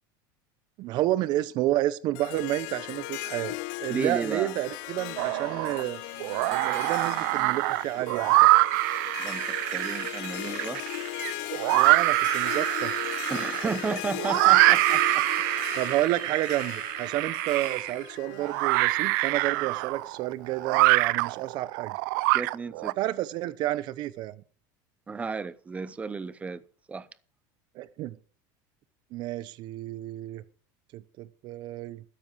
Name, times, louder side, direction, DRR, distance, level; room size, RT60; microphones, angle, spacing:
voice 1, 0.8-6.0 6.5-8.5 11.7-12.9 15.7-22.0 23.0-24.3 27.7-28.2 29.1-30.4 30.9-32.0, right 15 dB, 45° right, 0.9 m, -30 dB
Harp, 2.1-19.4, left 23 dB, 60° left, 0.5 m, -38 dB
voice 2, 3.9-4.6 9.2-10.8 13.3-15.2 22.3-23.0 25.1-26.6 26.9-27.1, right 4 dB, 15° right, 0.6 m, -33 dB
sound 1, 5.2-5.8 6.2-22.9, right 21 dB, 70° right, 0.5 m, -25 dB
sound 2, 5.8-8.1 8.7-14.4, right 13 dB, 90° right, 2.1 m, -50 dB
13.0 x 10.0 x 4.7 m
cardioid pair, 160°, 11 cm